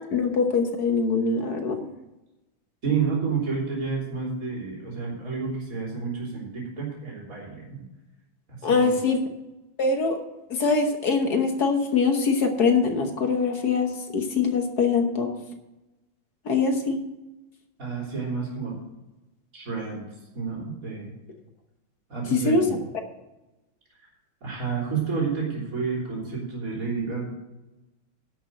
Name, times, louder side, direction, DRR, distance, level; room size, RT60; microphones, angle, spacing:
voice 1, 0.0-1.9 8.6-9.2 9.8-10.2 10.5-15.3 16.4-17.0 22.3-22.6, left 4 dB, 55° left, 4 dB, 1.6 m, -23 dB
voice 2, 2.8-7.8 8.6-9.0 17.8-18.8 19.5-20.0 20.3-21.1 22.1-22.8 24.4-27.2, right 5 dB, 40° right, -4 dB, 3.8 m, -30 dB
11.0 x 6.3 x 7.6 m, 1.0 s
omnidirectional pair, 2.2 m